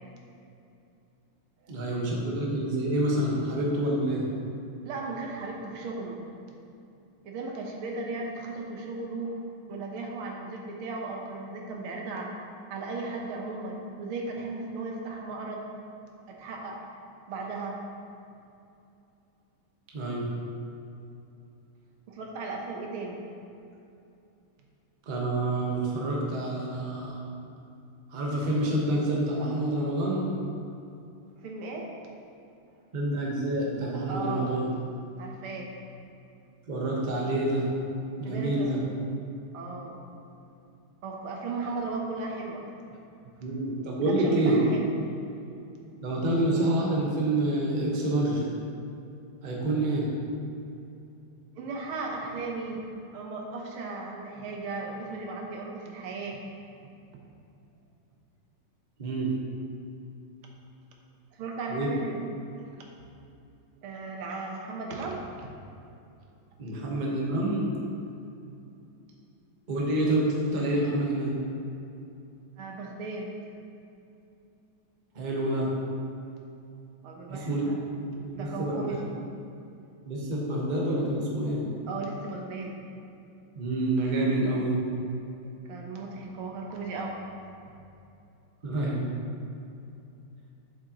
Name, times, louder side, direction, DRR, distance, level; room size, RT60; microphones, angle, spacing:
voice 1, 1.7-4.3 19.9-20.3 25.1-27.2 28.1-30.3 32.9-34.6 36.7-37.7 38.2-38.8 43.4-44.6 46.0-48.5 49.4-50.1 59.0-59.3 61.7-61.9 66.6-67.7 69.7-70.2 70.5-71.3 75.1-75.7 77.3-77.6 78.1-79.0 80.1-81.6 83.5-84.8 88.6-89.0, right 1 dB, 30° right, -3 dB, 0.9 m, -27 dB
voice 2, 4.9-6.2 7.2-9.4 9.7-12.3 12.7-15.7 16.3-16.8 17.3-17.8 22.1-23.2 31.4-31.9 34.1-34.5 35.2-35.7 38.2-38.7 39.5-40.0 41.0-42.6 42.9-43.0 44.0-44.9 51.6-52.8 53.1-56.4 56.8-56.9 61.3-62.3 63.8-65.5 72.6-73.3 77.0-77.8 78.3-79.1 81.9-82.8 85.7-87.1, right 3 dB, 80° right, 0 dB, 1.8 m, -36 dB
7.6 x 7.5 x 2.9 m, 2.7 s
omnidirectional pair, 2.3 m